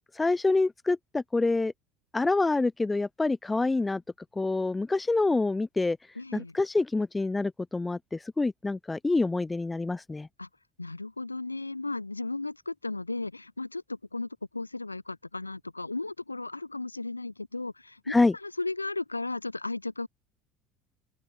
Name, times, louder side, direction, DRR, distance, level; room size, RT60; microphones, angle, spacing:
voice 1, 0.1-1.7 2.1-4.0 4.3-6.0 6.3-10.3 18.1-18.3, left 3 dB, 15° left, 1.5 m, -26 dB
voice 2, 6.2-6.5 10.4-10.5 10.8-20.1, left 2 dB, 85° left, 5.9 m, -35 dB
open air
figure-of-eight pair, 65°, 0 cm